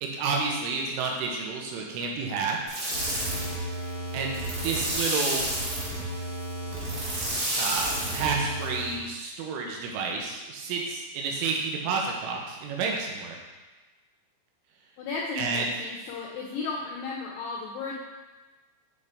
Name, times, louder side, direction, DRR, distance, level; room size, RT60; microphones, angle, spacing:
voice 1, 0.0-2.6 4.1-5.5 7.6-13.4 15.4-15.7, right 4 dB, 85° right, 0 dB, 3.4 m, -30 dB
sound 1, 2.7-9.0, right 1 dB, 55° right, 1.2 m, -30 dB
voice 2, 15.0-17.9, left 4 dB, 90° left, -3 dB, 2.3 m, -34 dB
9.0 x 4.0 x 3.6 m, 1.2 s
omnidirectional pair, 5.6 m